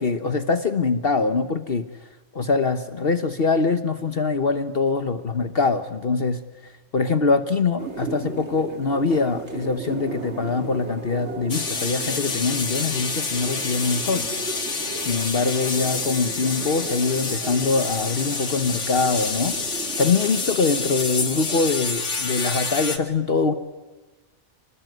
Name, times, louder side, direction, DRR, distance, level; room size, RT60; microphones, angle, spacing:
voice 1, 0.0-1.9 2.3-14.3 15.0-19.6 20.0-23.5, left 4 dB, 55° left, 10 dB, 1.4 m, -23 dB
sound 1, 7.8-21.7, right 3 dB, 70° right, 3.0 m, -36 dB
sound 2, 11.5-23.0, left 4 dB, 90° left, 2.5 m, -28 dB
29.5 x 21.5 x 9.5 m, 1.2 s
omnidirectional pair, 1.2 m